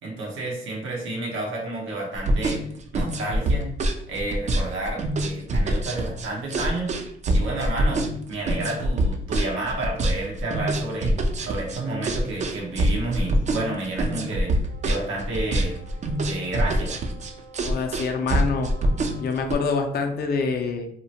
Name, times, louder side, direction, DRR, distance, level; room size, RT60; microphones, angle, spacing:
voice 1, 0.0-2.6 2.9-3.7 4.1-6.9 7.3-11.1 11.4-14.5 14.8-15.7 16.3-16.9, right 2 dB, 85° right, -2 dB, 0.9 m, -30 dB
sound 1, 2.1-19.5, right 1 dB, 35° right, 0.4 m, -24 dB
Wind instrument woodwind instrument, 14.7-19.7, right 1 dB, 65° right, 1.2 m, -49 dB
voice 2, 17.6-18.7 19.2-20.9, left 4 dB, 50° left, 4 dB, 0.5 m, -26 dB
2.8 x 2.1 x 2.7 m, 0.66 s
cardioid pair, 90°, 20 cm